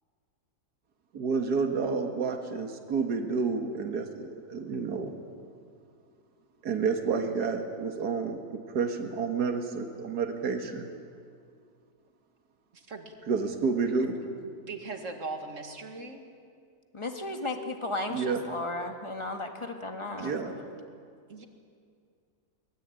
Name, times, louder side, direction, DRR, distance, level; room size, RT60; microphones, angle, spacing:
voice 1, 1.1-5.1 6.6-10.9 13.3-14.2 18.1-18.4 20.2-20.5, right 5 dB, 75° right, 5 dB, 2.1 m, -30 dB
voice 2, 12.7-13.1 14.2-16.2 20.2-20.4 21.3-21.5, right 3 dB, 50° right, 4 dB, 2.3 m, -40 dB
voice 3, 16.9-20.3, left 2 dB, 20° left, 4 dB, 1.8 m, -34 dB
23.5 x 20.0 x 8.9 m, 2.3 s
omnidirectional pair, 1.7 m